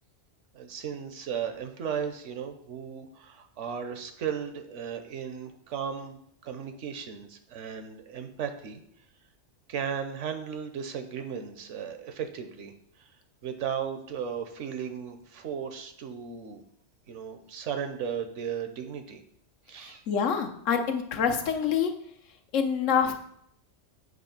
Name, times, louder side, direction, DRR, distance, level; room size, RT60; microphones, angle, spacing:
voice 1, 0.5-8.8 9.7-12.7 13.0-13.1 13.4-16.6 17.1-19.2 19.7-20.0, right 7 dB, 75° right, 7 dB, 1.1 m, -35 dB
voice 2, 20.1-21.9 22.5-23.1, left 7 dB, 80° left, 5 dB, 1.1 m, -26 dB
7.9 x 3.0 x 5.8 m, 0.70 s
omnidirectional pair, 1.3 m